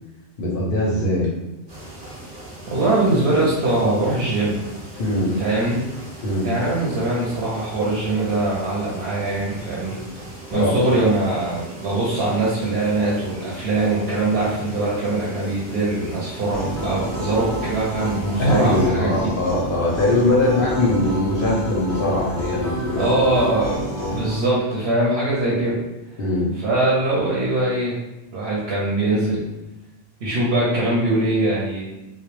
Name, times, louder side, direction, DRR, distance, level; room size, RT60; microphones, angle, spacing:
voice 1, 0.4-1.3 5.0-5.3 6.2-6.5 10.5-10.8 18.4-23.4 24.0-24.2 26.2-26.5, left 1 dB, 60° left, -4 dB, 0.6 m, -21 dB
sound 1, 1.7-18.9, right 1 dB, 25° right, 0.7 m, -39 dB
voice 2, 2.7-4.6 5.4-5.8 6.4-10.0 10.5-19.3 23.0-25.8 26.1-26.2 26.6-28.0 28.3-29.4 30.2-31.8, right 2 dB, 65° right, -6 dB, 0.8 m, -22 dB
sound 2, 16.5-24.3, right 1 dB, 20° left, 0.5 m, -29 dB
2.1 x 2.0 x 2.9 m, 1.0 s
omnidirectional pair, 1.3 m